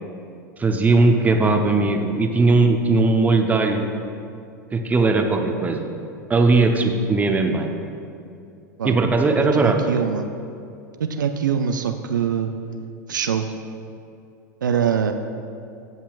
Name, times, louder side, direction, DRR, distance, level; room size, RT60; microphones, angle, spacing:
voice 1, 0.6-3.9 4.7-5.9 6.3-7.7 8.8-9.8, right 3 dB, 15° right, 4 dB, 0.8 m, -18 dB
voice 2, 9.5-10.3 11.0-12.5 13.1-13.5 14.6-15.1, right 7 dB, 80° right, 7 dB, 0.4 m, -23 dB
15.0 x 5.7 x 2.4 m, 2.6 s
figure-of-eight pair, 90°, 10 cm